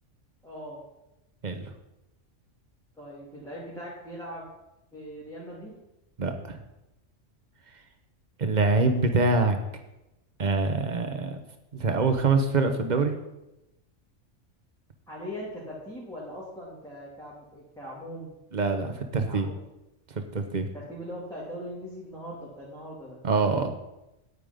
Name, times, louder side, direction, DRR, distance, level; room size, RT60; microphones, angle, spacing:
voice 1, 0.4-0.8 3.0-4.4 4.9-5.7 15.1-18.3 18.6-18.9 19.2-19.6 20.7-23.2, equal, 5° left, -8 dB, 2.5 m, -40 dB
voice 2, 6.2-6.6 8.4-9.6 10.4-11.4 11.7-13.1 18.5-19.5 20.1-20.7 23.2-23.7, right 3 dB, 40° right, 6 dB, 1.1 m, -25 dB
9.8 x 8.8 x 5.2 m, 0.92 s
omnidirectional pair, 1.3 m